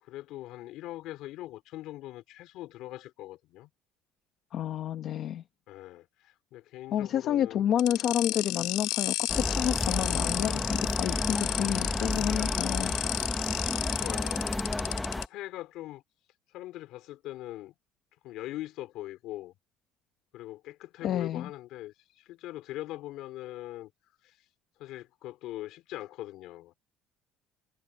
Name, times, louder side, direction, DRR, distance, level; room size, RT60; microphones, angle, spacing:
voice 1, 0.0-3.7 5.7-7.6 14.0-16.0 16.5-17.7 18.2-19.5 20.3-23.9 24.2-24.3 24.8-26.8, left 15 dB, 60° left, 3.8 m, -42 dB
voice 2, 4.5-5.4 6.9-12.9 21.0-21.5, left 10 dB, 40° left, 0.8 m, -30 dB
sound 1, 7.8-15.2, left 19 dB, 85° left, 2.7 m, -32 dB
sound 2, 9.3-15.3, left 2 dB, 5° left, 0.9 m, -32 dB
cardioid pair, 180°, 0 cm